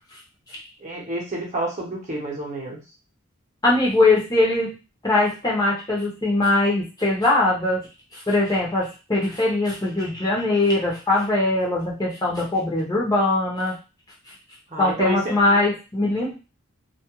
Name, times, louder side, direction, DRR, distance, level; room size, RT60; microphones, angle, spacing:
voice 1, 0.8-2.8 14.7-15.3, right 1 dB, 35° right, -2 dB, 0.7 m, -29 dB
voice 2, 3.6-4.8 5.0-7.8 8.1-13.8 14.8-16.3, left 2 dB, 20° left, -4 dB, 0.6 m, -21 dB
2.3 x 2.1 x 2.9 m, 0.31 s
head